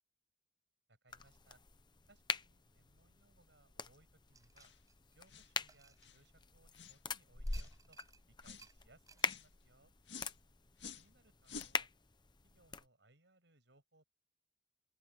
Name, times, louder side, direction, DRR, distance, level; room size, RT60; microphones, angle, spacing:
voice 1, 0.9-1.6 2.1-4.7 5.1-8.0 8.3-9.9 11.0-11.9 12.4-14.1, right 2 dB, 70° right, 7.2 m, -69 dB
sound 1, 1.1-12.9, left 4 dB, 25° left, 0.9 m, -44 dB
sound 2, 4.3-6.7 7.4-8.2 8.6-8.7 9.1-9.3, right 5 dB, 20° right, 7.0 m, -61 dB
sound 3, 4.6-4.8 5.3-5.5 6.0-6.2 6.7-7.0 7.5-7.8 8.4-8.7 9.2-9.5 10.1-10.3 10.8-11.1 11.4-11.8, left 5 dB, 70° left, 1.9 m, -51 dB
open air
head